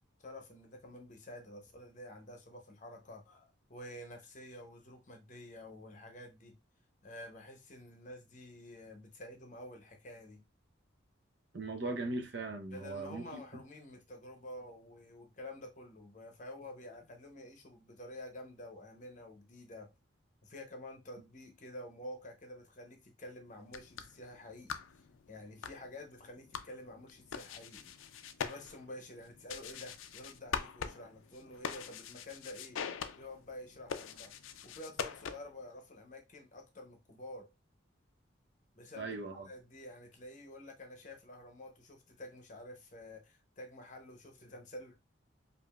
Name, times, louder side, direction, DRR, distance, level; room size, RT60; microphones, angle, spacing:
voice 1, 0.2-6.6 7.0-10.4 12.7-19.9 20.4-27.9 28.4-34.3 34.6-37.5 38.7-39.2 39.4-45.0, left 1 dB, 40° left, 0.7 m, -49 dB
voice 2, 11.5-13.6 39.0-39.5, right 2 dB, 60° right, 0.6 m, -39 dB
sound 1, 23.6-35.6, left 7 dB, 80° left, 0.4 m, -44 dB
4.8 x 2.5 x 2.3 m
head